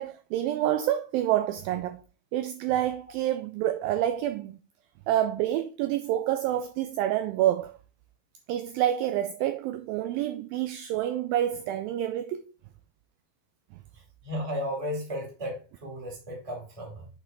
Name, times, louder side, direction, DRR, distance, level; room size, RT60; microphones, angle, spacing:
voice 1, 0.0-2.0 2.3-4.6 5.1-7.8 8.5-12.5, right 12 dB, 80° right, 2.1 m, -28 dB
voice 2, 13.9-17.1, equal, 10° right, 1.6 m, -35 dB
8.1 x 4.3 x 3.6 m
omnidirectional pair, 4.5 m